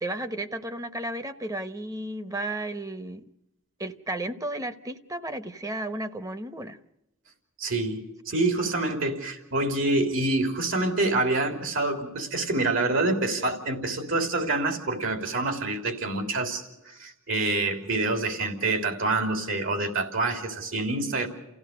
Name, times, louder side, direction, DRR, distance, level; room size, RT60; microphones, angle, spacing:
voice 1, 0.0-3.2 3.8-6.8 21.1-21.3, right 1 dB, 15° right, 10 dB, 1.1 m, -33 dB
voice 2, 7.6-21.3, right 2 dB, 75° right, 5 dB, 3.3 m, -27 dB
29.5 x 16.0 x 6.6 m, 0.90 s
head